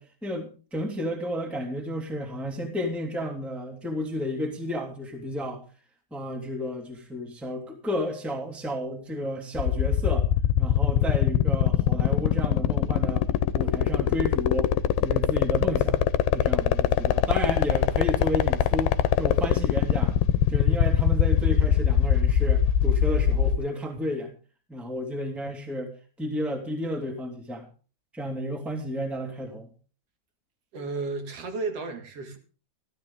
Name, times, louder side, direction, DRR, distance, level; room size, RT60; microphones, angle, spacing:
voice 1, 0.0-5.6 6.1-10.3 10.6-13.3 13.5-16.0 16.3-20.1 20.5-24.3 24.7-25.9 26.2-27.7 28.1-29.7, equal, ahead, 2 dB, 2.2 m, -32 dB
sound 1, 9.6-23.6, left 11 dB, 90° left, 2.8 m, -21 dB
voice 2, 30.7-32.4, right 3 dB, 45° right, 6 dB, 2.4 m, -33 dB
15.5 x 13.0 x 3.7 m, 0.37 s
omnidirectional pair, 4.4 m